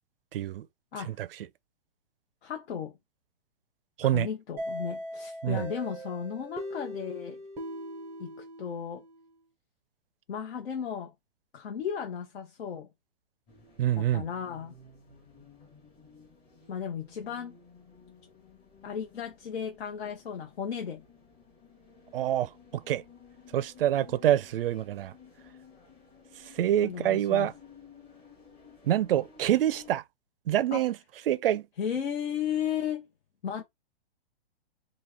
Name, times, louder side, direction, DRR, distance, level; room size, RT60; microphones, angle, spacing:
voice 1, 0.3-0.7 1.0-1.3 4.0-4.3 5.4-5.6 13.8-14.3 22.1-23.0 23.5-25.1 26.6-27.5 28.9-30.0 30.5-31.0 31.3-31.7, right 12 dB, 60° right, 0.5 m, -26 dB
voice 2, 2.4-2.9 4.0-7.4 8.2-9.0 10.3-11.1 11.5-12.9 13.9-14.7 16.7-17.6 18.8-21.0 26.8-27.5 30.7-30.9 31.8-33.1 33.4-33.6, left 8 dB, 75° left, 0.9 m, -35 dB
sound 1, 4.6-9.2, right 1 dB, 5° right, 0.5 m, -39 dB
sound 2, 13.5-29.9, left 5 dB, 20° left, 0.9 m, -55 dB
3.0 x 2.6 x 3.4 m
hypercardioid pair, 155°, 32 cm